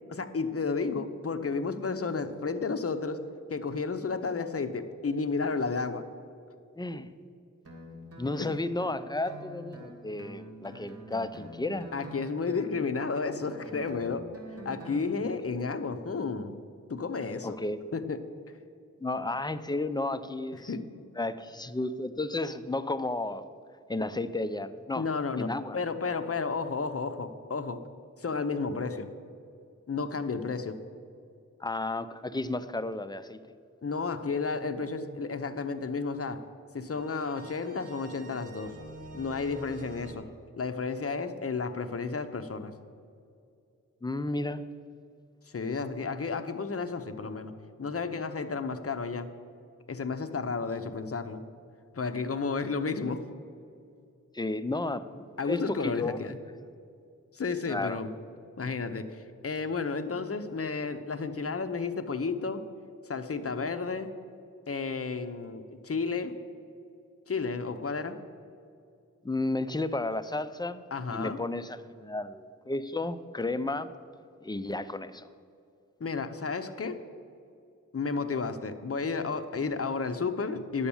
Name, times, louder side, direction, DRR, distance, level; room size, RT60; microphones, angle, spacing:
voice 1, 0.1-3.2 3.5-6.0 8.4-8.6 11.9-14.3 14.6-16.6 16.9-17.6 17.9-18.3 20.7-20.9 25.0-27.8 28.2-29.1 29.9-30.8 33.8-36.4 36.7-38.8 39.1-40.3 40.6-42.7 45.5-47.5 47.8-49.3 49.9-51.4 51.9-53.2 55.4-56.4 57.3-58.1 58.6-62.7 63.1-64.1 64.7-66.4 67.3-68.2 70.9-71.4 76.0-77.0 77.9-80.9, left 4 dB, 50° left, 9 dB, 0.8 m, -32 dB
voice 2, 6.8-7.1 8.2-11.9 15.2-15.3 17.4-17.8 19.0-20.7 21.2-23.5 23.9-25.1 25.4-25.8 31.6-33.4 44.0-44.6 54.3-56.2 57.7-58.0 69.2-70.8 71.1-73.9 74.4-75.3, left 2 dB, 15° left, 12 dB, 0.5 m, -33 dB
Guitar, 7.6-15.0, equal, 50° right, 2.7 m, -46 dB
sound 1, 36.9-40.1, right 1 dB, 30° right, 2.6 m, -47 dB
10.0 x 7.1 x 7.1 m, 2.4 s
cardioid pair, 50°, 31 cm